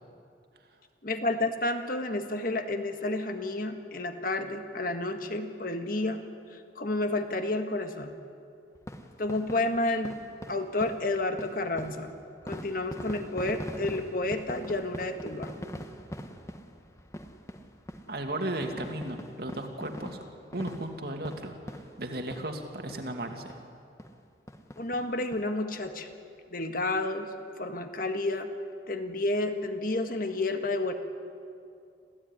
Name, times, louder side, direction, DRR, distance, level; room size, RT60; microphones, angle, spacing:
voice 1, 1.0-8.1 9.2-10.2 10.5-12.1 12.5-15.5 24.8-26.1 26.5-27.3 27.6-28.5 28.9-30.9, left 2 dB, 50° left, 7 dB, 1.6 m, -30 dB
sound 1, 8.8-22.6 22.9-23.1 23.5-23.6 24.0-24.2 24.5-25.4 25.8-25.9 26.1-26.2, equal, 15° left, 1.3 m, -43 dB
voice 2, 18.1-20.2 20.5-23.6, right 1 dB, 55° right, 4 dB, 2.4 m, -35 dB
27.0 x 15.5 x 9.8 m, 2.5 s
head